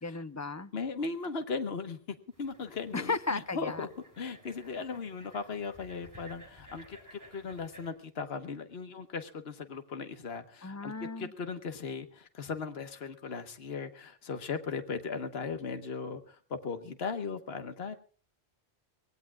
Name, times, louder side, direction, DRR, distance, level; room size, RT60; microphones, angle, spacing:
voice 1, 0.0-0.7 2.9-3.9 10.6-11.3, left 3 dB, 20° left, 13 dB, 0.5 m, -35 dB
voice 2, 0.7-2.0 2.4-3.9 4.2-18.0, left 4 dB, 70° left, 8 dB, 1.5 m, -38 dB
sound 1, 2.3-7.9, right 1 dB, 15° right, 5.8 m, -55 dB
24.5 x 18.5 x 2.4 m, 0.39 s
omnidirectional pair, 1.1 m